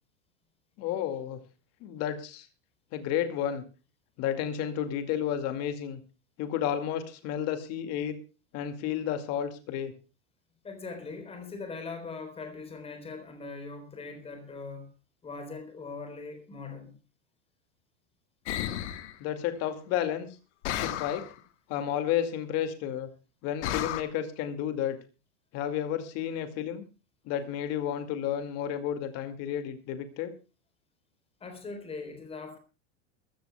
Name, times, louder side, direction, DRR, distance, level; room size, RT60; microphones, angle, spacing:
voice 1, 0.8-1.4 1.8-2.5 2.9-3.6 4.2-6.0 6.4-8.2 8.5-9.9 19.2-20.3 20.8-21.2 21.7-23.1 23.4-25.0 25.5-26.8 27.3-30.3, left 10 dB, 45° left, 2.3 m, -31 dB
voice 2, 10.6-14.9 15.2-16.9 31.4-32.6, left 4 dB, 15° left, 4.0 m, -41 dB
sound 1, 18.5-19.1 20.6-21.3 23.6-24.0, left 12 dB, 75° left, 1.8 m, -32 dB
22.0 x 14.5 x 2.3 m
supercardioid pair, 150°, 36 cm